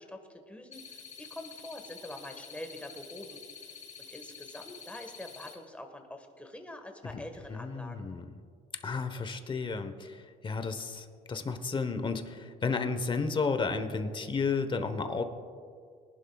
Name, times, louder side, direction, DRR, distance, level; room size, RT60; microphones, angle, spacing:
voice 1, 0.0-3.4 4.0-8.1, left 1 dB, 10° left, 4 dB, 1.5 m, -45 dB
sound 1, 0.7-5.5, left 6 dB, 45° left, 2.8 m, -48 dB
voice 2, 7.5-8.3 8.8-15.2, left 4 dB, 30° left, 8 dB, 1.0 m, -32 dB
22.5 x 11.0 x 2.4 m, 2.2 s
cardioid pair, 110°, 17 cm